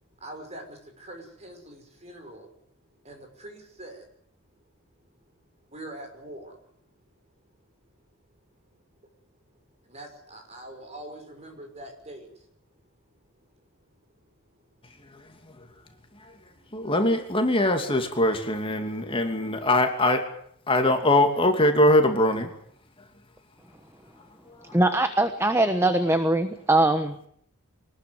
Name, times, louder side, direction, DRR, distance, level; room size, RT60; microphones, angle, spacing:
voice 1, 0.2-2.5 3.0-4.1 5.7-6.6 9.8-12.4 13.6-13.7, right 1 dB, 30° right, 5 dB, 5.7 m, -43 dB
voice 2, 16.7-20.3 20.7-22.5 24.5-24.8, left 1 dB, 25° left, 5 dB, 2.9 m, -22 dB
voice 3, 24.7-27.1, right 2 dB, 10° right, 9 dB, 1.3 m, -22 dB
24.5 x 20.0 x 8.0 m, 0.65 s
head